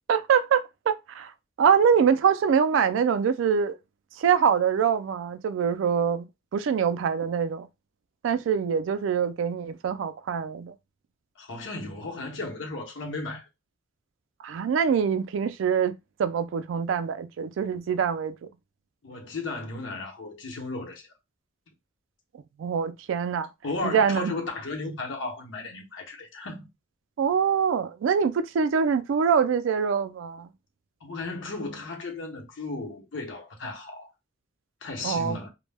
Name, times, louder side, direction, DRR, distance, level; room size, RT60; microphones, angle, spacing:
voice 1, 0.1-1.3 1.6-3.8 4.2-6.2 6.5-7.7 8.2-10.7 14.4-15.9 16.2-18.5 22.6-23.5 23.8-24.3 27.2-30.5 35.0-35.4, right 7 dB, 80° right, 0.3 m, -24 dB
voice 2, 11.4-13.5 19.0-21.0 23.6-26.7 31.0-34.1 34.8-35.5, left 3 dB, 75° left, 0.8 m, -35 dB
2.1 x 2.1 x 3.3 m
head